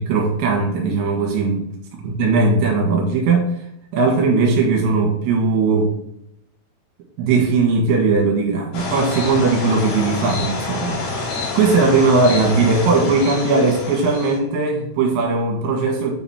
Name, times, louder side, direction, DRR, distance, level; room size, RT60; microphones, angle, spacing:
voice 1, 0.0-1.7 2.0-3.5 3.9-5.9 7.2-11.0 11.6-16.1, right 3 dB, 70° right, 0 dB, 3.6 m, -18 dB
sound 1, 8.7-14.4, left 3 dB, 75° left, 5.3 m, -27 dB
9.4 x 4.0 x 4.3 m, 0.74 s
omnidirectional pair, 6.0 m